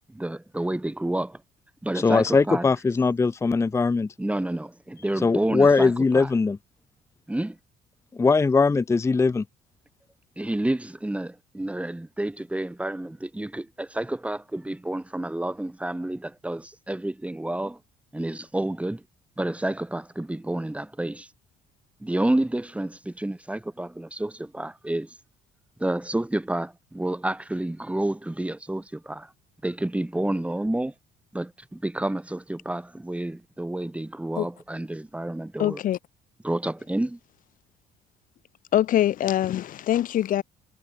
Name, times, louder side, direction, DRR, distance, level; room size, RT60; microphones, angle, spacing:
voice 1, 0.1-1.4 1.8-2.6 4.2-6.3 7.3-7.6 10.4-17.8 18.1-19.0 19.4-21.3 22.0-25.1 25.8-29.3 29.6-30.9 31.3-35.8 36.4-37.2, right 1 dB, 5° right, 5.7 m, -29 dB
voice 2, 1.9-4.1 5.2-6.6 8.1-9.4, left 4 dB, 15° left, 0.6 m, -21 dB
voice 3, 35.6-36.0 38.7-40.4, left 12 dB, 55° left, 0.8 m, -23 dB
cardioid pair, 110°, 17 cm